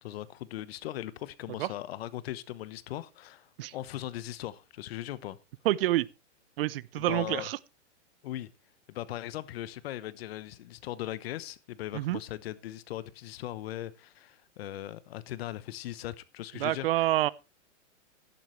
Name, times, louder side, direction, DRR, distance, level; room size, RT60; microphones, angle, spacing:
voice 1, 0.0-5.4 7.0-7.5 8.2-8.5 8.9-17.1, left 14 dB, 55° left, 1.0 m, -39 dB
voice 2, 5.6-6.1 6.6-7.6 11.9-12.2 16.5-17.3, right 15 dB, 50° right, 0.6 m, -27 dB
11.5 x 11.0 x 3.2 m
hypercardioid pair, 145°, 36 cm